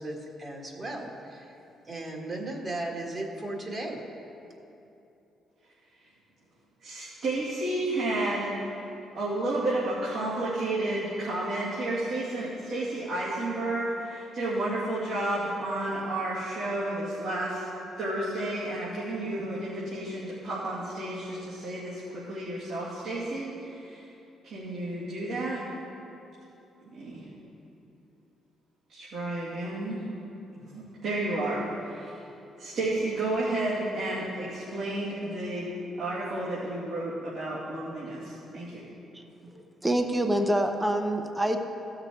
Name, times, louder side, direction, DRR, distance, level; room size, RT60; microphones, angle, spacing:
voice 1, 0.0-1.5 1.8-4.0, right 2 dB, 40° right, 0 dB, 1.7 m, -36 dB
voice 2, 6.8-8.5 9.1-17.6 18.0-24.1 24.4-25.6 26.9-27.3 28.9-30.0 30.5-32.2 32.6-35.7 36.0-38.8, right 2 dB, 75° right, -10 dB, 2.6 m, -31 dB
voice 3, 39.5-41.6, right 1 dB, 10° right, 5 dB, 0.8 m, -26 dB
15.5 x 6.7 x 4.6 m, 2.9 s
cardioid pair, 90°, 0 cm